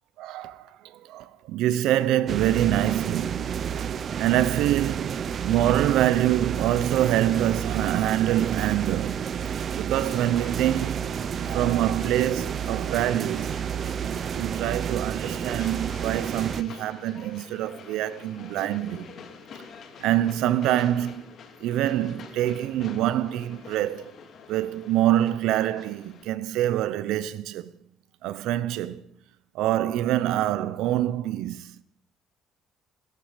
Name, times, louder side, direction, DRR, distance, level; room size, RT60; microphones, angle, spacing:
voice 1, 0.2-0.7 1.1-9.3 9.8-11.1 11.4-13.5 14.1-19.1 20.0-21.3 21.6-24.0 24.5-27.7 28.2-29.0 29.5-31.7, right 13 dB, 85° right, 0.9 m, -25 dB
sound 1, 2.3-16.6, right 8 dB, 45° right, 0.7 m, -30 dB
Train, 10.1-26.2, left 6 dB, 55° left, 3.0 m, -47 dB
16.5 x 14.0 x 5.3 m
cardioid pair, 115°, 0 cm